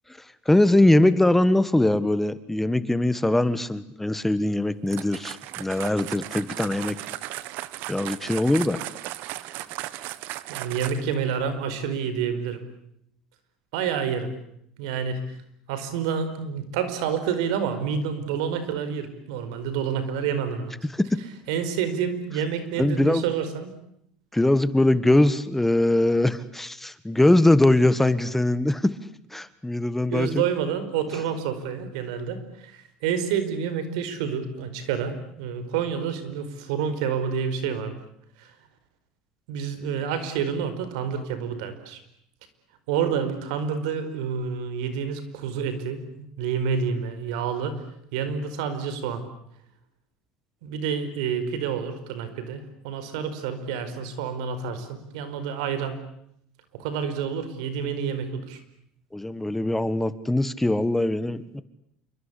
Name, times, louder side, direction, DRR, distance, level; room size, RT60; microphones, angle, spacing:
voice 1, 0.2-7.0 7.9-8.8 20.8-21.2 22.8-23.2 24.3-29.0 29.3-30.4 59.1-61.6, left 1 dB, 5° left, 14 dB, 1.6 m, -22 dB
sound 1, 4.9-11.2, right 16 dB, 70° right, 1.5 m, -36 dB
voice 2, 10.5-12.6 13.7-14.3 14.8-15.4 15.7-20.7 21.5-23.7 30.1-37.9 38.4-38.5 39.5-42.0 42.9-47.8 48.1-49.2 50.6-56.0 56.7-58.6, right 7 dB, 85° right, 11 dB, 4.9 m, -28 dB
28.0 x 24.5 x 8.5 m, 0.73 s
supercardioid pair, 105°, 3 cm